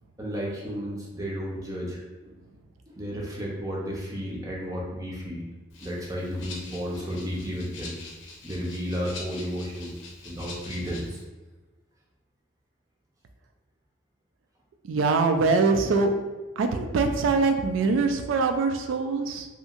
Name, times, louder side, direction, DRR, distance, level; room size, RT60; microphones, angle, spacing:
voice 1, 0.2-2.3 2.9-5.4 5.8-7.9 8.4-9.9 10.2-11.2, equal, 20° right, -3 dB, 0.5 m, -33 dB
Rattle (instrument), 5.7-11.2, left 3 dB, 75° left, 0.6 m, -44 dB
voice 2, 14.9-16.1 16.6-19.5, right 4 dB, 80° right, 6 dB, 0.3 m, -23 dB
2.8 x 2.6 x 2.4 m, 1.2 s
head